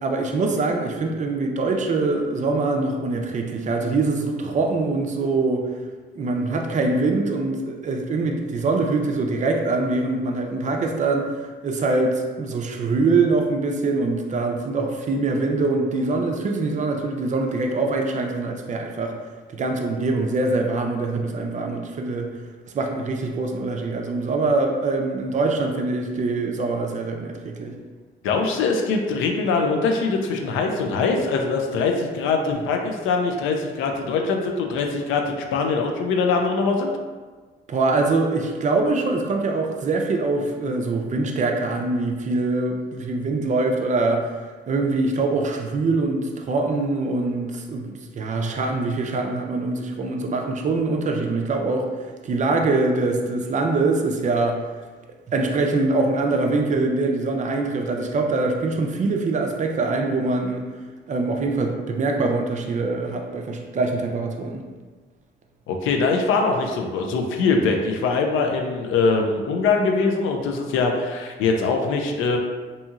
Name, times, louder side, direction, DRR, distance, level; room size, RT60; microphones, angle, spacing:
voice 1, 0.0-5.6 6.2-11.3 11.6-19.2 19.5-22.3 22.7-27.7 37.7-44.3 44.7-51.9 52.2-54.6 55.3-60.6 61.1-64.6, right 3 dB, 40° right, 2 dB, 0.4 m, -23 dB
voice 2, 28.2-36.9 65.7-72.4, left 4 dB, 90° left, 3 dB, 0.4 m, -22 dB
2.8 x 2.7 x 2.4 m, 1.4 s
cardioid pair, 90°, 20 cm